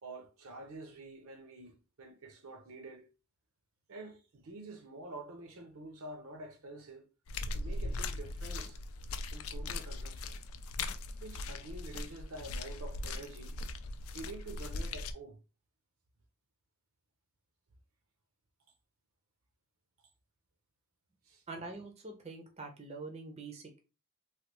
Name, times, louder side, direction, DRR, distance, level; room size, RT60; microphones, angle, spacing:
voice 1, 0.0-3.1 3.9-7.1 7.5-8.8 9.3-10.4 11.2-13.6 14.1-15.4 21.2-21.4, right 2 dB, 70° right, 0.7 m, -48 dB
sound 1, 7.3-15.1, left 2 dB, 70° left, 0.3 m, -39 dB
voice 2, 21.5-23.8, right 3 dB, 30° right, 0.5 m, -45 dB
3.2 x 2.2 x 2.9 m
head